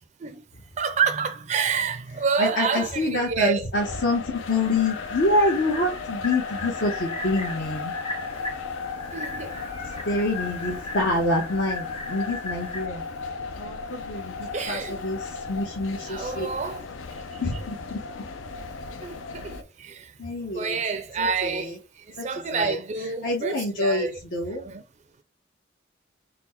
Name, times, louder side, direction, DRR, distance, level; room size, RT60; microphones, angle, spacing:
voice 1, 0.8-3.7 9.1-9.5 14.5-15.0 16.0-16.9 19.0-20.1 20.5-21.7 22.1-24.1 24.5-24.8, right 5 dB, 35° right, 0.4 m, -28 dB
voice 2, 2.4-7.9 10.1-13.1 13.5-16.5 17.4-18.2 20.2-20.8 21.2-21.8 22.1-22.8 23.2-24.7, left 2 dB, 75° left, 0.9 m, -27 dB
sound 1, 3.7-19.6, left 4 dB, 90° left, 0.5 m, -36 dB
sound 2, 4.4-12.9, left 3 dB, 30° left, 0.7 m, -37 dB
4.1 x 2.1 x 4.3 m
head